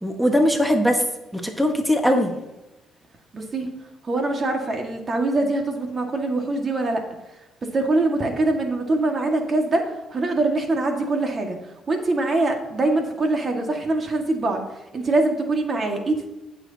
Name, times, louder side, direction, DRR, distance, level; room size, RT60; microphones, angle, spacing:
voice 1, 0.0-1.0 1.3-2.3, equal, ahead, 2 dB, 1.4 m, -20 dB
voice 2, 3.3-3.7 4.0-7.0 7.6-11.6 11.9-16.3, right 2 dB, 40° right, 3 dB, 1.8 m, -23 dB
15.5 x 6.4 x 2.9 m, 0.98 s
supercardioid pair, 75°, 0 cm